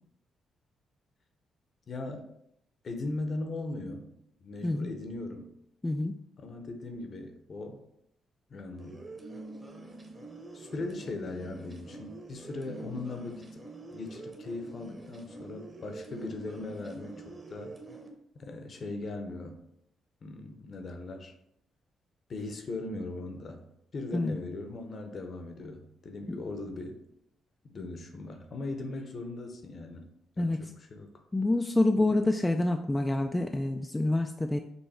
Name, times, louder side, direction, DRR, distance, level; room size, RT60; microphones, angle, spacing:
voice 1, 1.9-2.3 2.8-4.1 4.4-5.5 6.4-7.8 8.5-9.0 10.5-13.6 13.9-17.8 18.3-19.6 20.2-21.3 22.3-23.6 23.9-27.0 27.6-30.1 30.4-31.1, left 2 dB, 45° left, 5 dB, 0.8 m, -39 dB
voice 2, 5.8-6.1 24.1-24.4 30.4-30.6 31.3-34.6, left 2 dB, 15° left, 5 dB, 0.3 m, -27 dB
sound 1, 8.8-18.1, right 2 dB, 20° right, 0.9 m, -46 dB
5.5 x 2.2 x 4.2 m, 0.75 s
cardioid pair, 90°, 0 cm